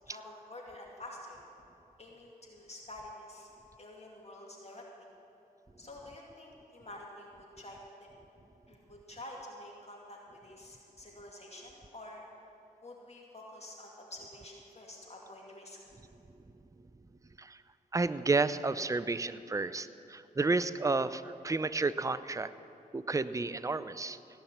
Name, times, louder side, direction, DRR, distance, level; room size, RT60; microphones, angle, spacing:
voice 1, 0.1-1.4 2.0-3.5 3.8-4.8 5.8-8.1 8.7-12.2 12.8-15.8, left 1 dB, 40° left, -2 dB, 2.5 m, -48 dB
voice 2, 17.9-22.5 22.9-24.2, right 3 dB, 20° right, 14 dB, 0.5 m, -31 dB
17.5 x 5.9 x 9.3 m, 2.8 s
supercardioid pair, 45°, 17 cm